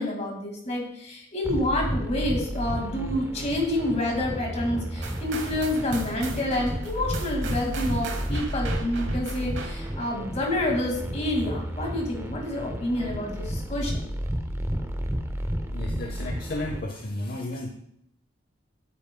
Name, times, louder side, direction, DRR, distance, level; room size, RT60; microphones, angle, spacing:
voice 1, 0.0-14.0, left 1 dB, 35° left, 0 dB, 2.0 m, -28 dB
sound 1, 1.4-16.8, equal, 15° right, 0.6 m, -32 dB
sound 2, 5.0-10.1, right 3 dB, 70° right, 1.1 m, -38 dB
voice 2, 15.7-17.7, left 1 dB, 55° left, 3 dB, 0.7 m, -33 dB
9.1 x 8.3 x 2.2 m, 0.72 s
head